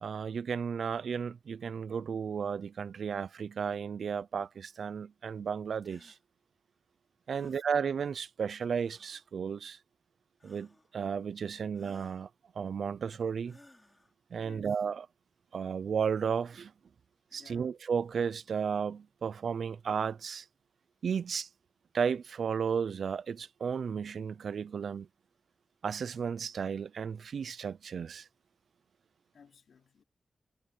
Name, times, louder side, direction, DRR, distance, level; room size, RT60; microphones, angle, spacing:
voice 1, 0.0-6.1 7.3-9.8 10.4-12.3 12.6-13.6 14.3-15.1 15.5-16.7 17.3-20.5 21.0-21.5 21.9-25.1 25.8-28.3, right 6 dB, 80° right, 0.4 m, -34 dB
sound 1, 5.8-6.2 7.3-7.7 8.8-9.3 10.4-10.9 11.7-12.3 13.4-14.1, left 1 dB, 15° left, 5.0 m, -59 dB
voice 2, 7.3-7.6 14.4-14.8 17.3-17.8 29.3-30.0, left 6 dB, 90° left, 3.4 m, -57 dB
wide cardioid pair, 120°, 0 cm